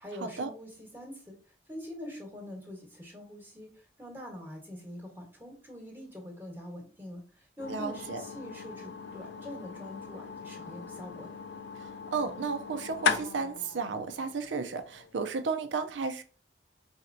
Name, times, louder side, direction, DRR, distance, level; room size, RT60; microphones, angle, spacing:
voice 1, 0.0-1.3 1.7-11.3, equal, 10° right, 1.1 m, -44 dB
sound 1, 7.6-15.4, left 5 dB, 70° left, 0.5 m, -38 dB
voice 2, 7.7-8.2 11.8-16.2, right 4 dB, 80° right, 0.5 m, -33 dB
4.2 x 4.1 x 2.6 m
head